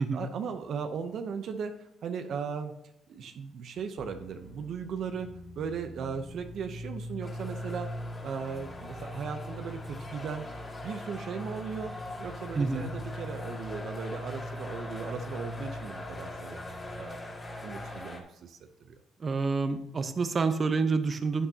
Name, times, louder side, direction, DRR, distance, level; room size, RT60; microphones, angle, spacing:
voice 1, 0.1-2.7 3.1-5.3 5.6-7.9 8.2-10.4 10.8-11.9 12.2-16.6 17.0-17.2 17.6-18.6 18.8-19.0, right 6 dB, 70° right, 7 dB, 0.7 m, -37 dB
sound 1, 4.0-18.0, left 1 dB, 55° left, 2.6 m, -42 dB
sound 2, 7.2-18.2, left 2 dB, 30° left, 2.3 m, -43 dB
voice 2, 19.2-21.5, right 4 dB, 40° right, 9 dB, 0.9 m, -28 dB
11.0 x 8.6 x 2.8 m, 0.84 s
cardioid pair, 90°, 0 cm